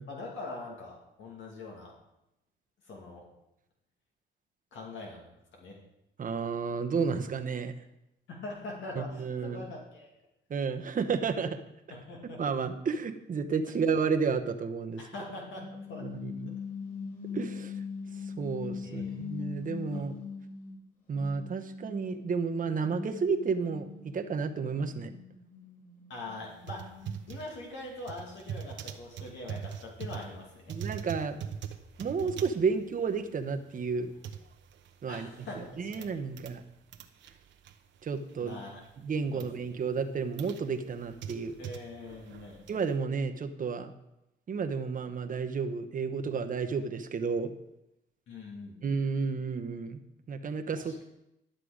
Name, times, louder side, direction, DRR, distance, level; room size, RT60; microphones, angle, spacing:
voice 1, 0.1-1.9 2.8-3.2 4.7-5.8 8.3-10.1 11.9-12.4 15.0-16.1 18.8-19.2 19.9-20.0 26.1-26.8 27.3-30.8 35.1-36.2 38.4-38.8 39.3-39.5 41.6-42.6 48.3-48.8 50.8-51.0, left 2 dB, 75° left, -2 dB, 2.5 m, -43 dB
voice 2, 6.2-7.7 9.0-9.6 10.5-11.6 12.4-15.0 16.0-16.6 17.3-17.8 18.4-20.2 21.1-25.1 30.7-31.5 32.0-34.1 35.0-35.3 35.8-36.6 38.0-38.6 39.0-41.5 42.7-43.9 44.5-47.5 48.8-50.0 50.3-51.0, right 5 dB, 45° right, 6 dB, 1.0 m, -31 dB
sound 1, 15.5-20.8 21.1-27.3, left 6 dB, 45° left, 4.1 m, -42 dB
sound 2, 26.5-36.6 36.9-38.5 38.8-39.5 40.0-42.9, right 8 dB, 70° right, 0.9 m, -43 dB
11.5 x 6.7 x 5.1 m, 0.86 s
cardioid pair, 90°, 20 cm